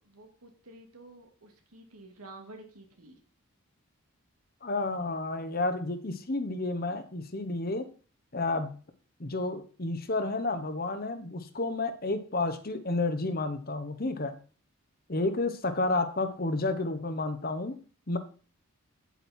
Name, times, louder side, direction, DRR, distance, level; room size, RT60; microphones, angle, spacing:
voice 1, 0.0-3.2, right 2 dB, 85° right, 3 dB, 2.3 m, -50 dB
voice 2, 4.6-7.9 8.3-8.7 9.2-14.4 15.1-17.8 18.1-18.2, left 2 dB, 40° left, 9 dB, 1.0 m, -31 dB
8.9 x 8.2 x 4.4 m, 0.40 s
head